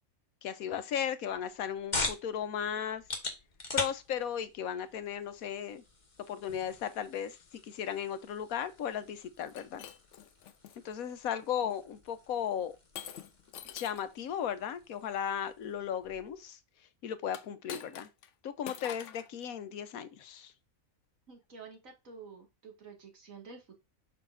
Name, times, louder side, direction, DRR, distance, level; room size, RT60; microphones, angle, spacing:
voice 1, 0.4-3.0 3.7-5.8 6.3-9.9 10.8-12.7 13.6-16.6 17.0-18.1 18.4-20.5, left 9 dB, 90° left, 1.2 m, -36 dB
sound 1, 1.3-16.4, left 2 dB, 35° left, 1.4 m, -43 dB
Shatter, 9.4-10.8 11.4-11.8 13.0-14.1 17.3-18.3 18.7-19.3, left 9 dB, 65° left, 0.9 m, -46 dB
voice 2, 21.3-23.8, right 5 dB, 70° right, 2.3 m, -50 dB
6.9 x 5.8 x 2.6 m
omnidirectional pair, 1.5 m